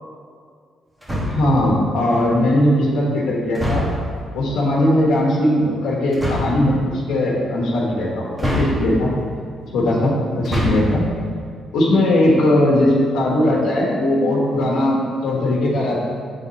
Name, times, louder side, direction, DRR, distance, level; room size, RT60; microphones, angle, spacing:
sound 1, 1.0-1.6 3.5-4.2 6.1-6.6 8.4-9.2 10.3-11.0, equal, 15° right, 1.1 m, -24 dB
voice 1, 1.2-3.9 4.3-9.1 9.7-11.1 11.7-16.0, left 1 dB, 80° left, -5 dB, 1.2 m, -19 dB
8.1 x 3.6 x 4.0 m, 2.2 s
cardioid pair, 90°, 0 cm